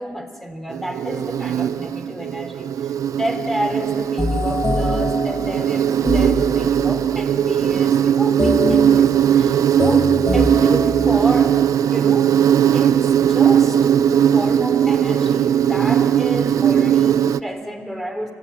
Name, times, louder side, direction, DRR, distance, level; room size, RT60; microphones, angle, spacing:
voice 1, 0.0-12.3 12.7-18.3, equal, 5° left, 5 dB, 3.5 m, -30 dB
Insect, 0.7-17.4, right 9 dB, 75° right, 0.5 m, -18 dB
sound 1, 4.2-7.2 8.4-11.7, left 2 dB, 25° left, 0.9 m, -25 dB
25.0 x 17.5 x 9.6 m, 2.1 s
cardioid pair, 75°, 6 cm